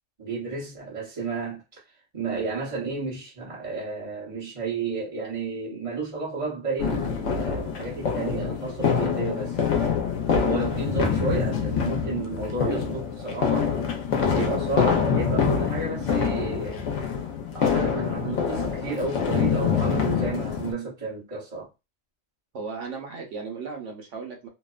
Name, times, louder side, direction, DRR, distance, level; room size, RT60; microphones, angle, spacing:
voice 1, 0.2-1.8 2.1-9.6 10.4-13.7 14.3-16.8 17.5-21.7, right 3 dB, 30° right, 1.0 m, -32 dB
sound 1, 6.8-20.7, left 6 dB, 90° left, 1.0 m, -25 dB
voice 2, 22.5-24.5, right 4 dB, 85° right, 1.1 m, -36 dB
2.8 x 2.1 x 2.3 m
omnidirectional pair, 1.2 m